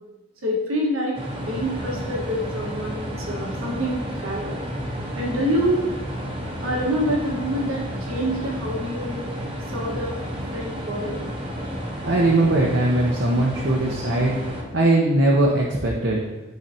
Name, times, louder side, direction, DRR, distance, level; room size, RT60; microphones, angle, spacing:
voice 1, 0.4-4.6 5.2-5.9 6.6-9.3 9.7-10.3 10.5-11.3, equal, 85° right, -3 dB, 1.5 m, -26 dB
sound 1, 1.1-14.6, equal, 25° right, 1.1 m, -31 dB
voice 2, 12.0-14.4 14.7-16.2, right 2 dB, 55° right, -3 dB, 0.9 m, -20 dB
11.5 x 4.0 x 2.9 m, 1.1 s
head